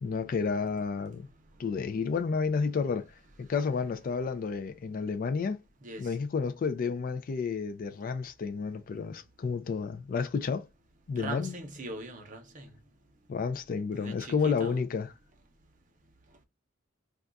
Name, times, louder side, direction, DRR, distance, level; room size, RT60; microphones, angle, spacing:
voice 1, 0.0-1.3 1.6-3.1 3.4-5.6 6.0-10.6 11.1-11.6 13.3-15.1, left 5 dB, 45° left, 0.3 m, -31 dB
voice 2, 11.2-12.7 14.0-14.8, right 2 dB, 40° right, 0.7 m, -41 dB
2.3 x 2.3 x 3.8 m
head